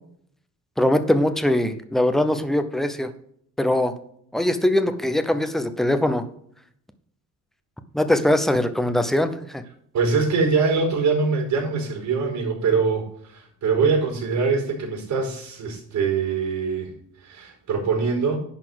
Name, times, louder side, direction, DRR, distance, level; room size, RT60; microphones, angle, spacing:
voice 1, 0.8-3.1 3.6-3.9 4.3-6.3 7.9-9.6, left 1 dB, ahead, 9 dB, 0.7 m, -21 dB
voice 2, 9.9-16.9 17.2-18.4, right 5 dB, 65° right, 1 dB, 4.6 m, -23 dB
10.5 x 4.2 x 7.8 m, 0.67 s
cardioid pair, 150°, 31 cm